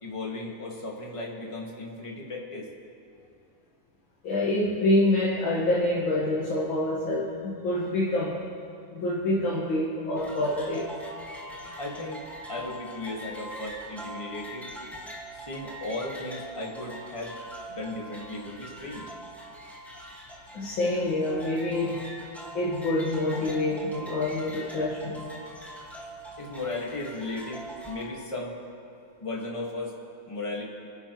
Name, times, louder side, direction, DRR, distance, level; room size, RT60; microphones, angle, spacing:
voice 1, 0.0-2.7 11.8-12.2 12.5-14.7 15.3-17.3 17.7-19.0 26.4-28.6 29.2-29.9 30.3-30.6, left 2 dB, 15° left, -2 dB, 1.7 m, -36 dB
voice 2, 4.2-8.4 8.9-10.9 11.3-11.5 20.5-22.0 22.5-25.3, left 1 dB, 70° left, -6 dB, 2.4 m, -26 dB
sound 1, 10.2-28.0, equal, ahead, 1.5 m, -42 dB
28.0 x 10.0 x 3.1 m, 2.6 s
omnidirectional pair, 2.3 m